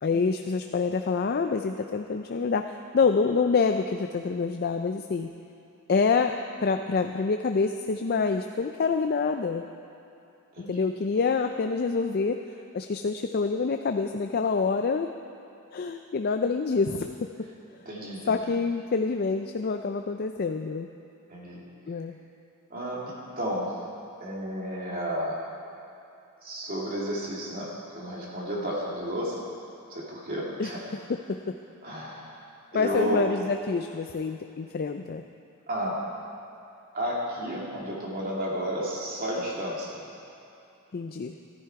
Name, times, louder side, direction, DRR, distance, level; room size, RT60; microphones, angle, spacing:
voice 1, 0.0-5.3 5.9-9.6 10.7-15.1 15.7-17.1 18.3-20.9 21.9-22.2 30.6-30.7 31.1-31.6 32.7-35.2 40.9-41.4, left 4 dB, 45° left, 6 dB, 0.4 m, -27 dB
voice 2, 17.9-18.4 21.3-21.6 22.7-23.7 24.2-25.4 26.4-29.5 29.9-30.8 31.8-32.3 32.7-33.2 35.7-36.0 36.9-40.0, equal, 40° right, -4 dB, 2.6 m, -32 dB
14.0 x 13.5 x 4.7 m, 2.7 s
head